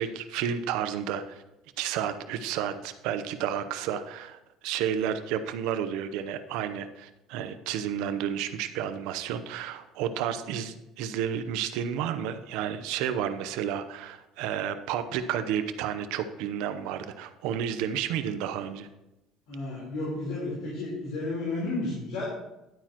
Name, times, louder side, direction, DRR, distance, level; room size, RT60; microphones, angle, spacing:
voice 1, 0.0-1.4 1.8-18.9, right 9 dB, 80° right, 10 dB, 0.8 m, -31 dB
voice 2, 19.5-22.2, left 2 dB, 75° left, -7 dB, 3.9 m, -32 dB
11.5 x 8.9 x 3.0 m, 0.95 s
cardioid pair, 160°, 0 cm